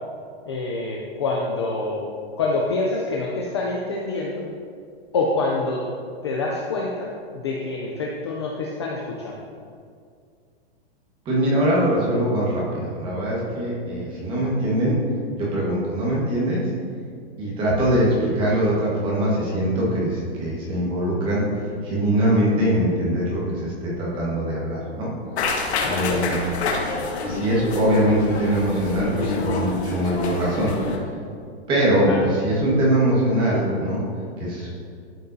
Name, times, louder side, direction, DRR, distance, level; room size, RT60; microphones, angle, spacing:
voice 1, 0.4-2.1 2.4-4.5 5.1-5.8 6.2-9.4 25.8-26.2 32.1-32.2, left 3 dB, 25° left, -2 dB, 0.4 m, -26 dB
voice 2, 11.2-15.0 15.4-16.6 17.4-21.4 21.8-25.1 25.9-26.4 27.2-30.7 31.7-34.0 34.4-34.7, right 1 dB, 15° right, -5 dB, 1.4 m, -22 dB
sound 1, 25.4-31.0, left 3 dB, 90° left, 1.4 m, -27 dB
12.0 x 5.3 x 2.6 m, 2.2 s
hypercardioid pair, 170°, 32 cm